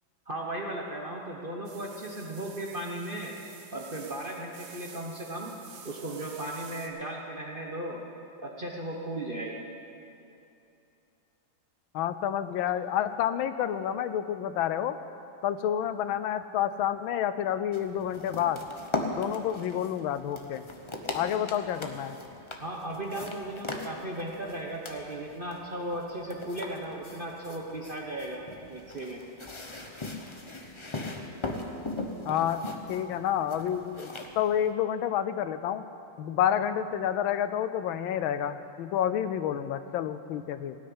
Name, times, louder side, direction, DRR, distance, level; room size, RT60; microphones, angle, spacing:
voice 1, 0.3-3.3 3.7-5.5 5.8-8.0 8.4-9.6 22.6-29.2, right 1 dB, 35° right, -1 dB, 0.9 m, -36 dB
sound 1, 1.7-6.9, right 6 dB, 85° right, 2.0 m, -49 dB
voice 2, 11.9-15.0 15.4-18.6 19.2-20.7 21.1-22.2 32.2-32.6 32.9-34.1 34.3-35.8 36.2-40.8, left 10 dB, 80° left, 12 dB, 1.4 m, -29 dB
sound 2, 17.7-34.7, left 2 dB, 35° left, 0.4 m, -39 dB
17.5 x 6.5 x 9.6 m, 2.8 s
omnidirectional pair, 2.2 m